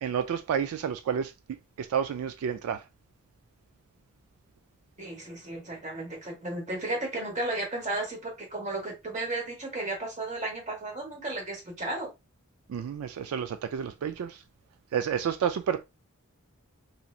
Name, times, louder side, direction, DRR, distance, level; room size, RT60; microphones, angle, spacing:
voice 1, 0.0-2.8 12.7-14.4 14.9-15.8, right 8 dB, 80° right, 0.3 m, -30 dB
voice 2, 5.0-12.1, right 2 dB, 35° right, 1.0 m, -34 dB
3.0 x 2.6 x 2.4 m
head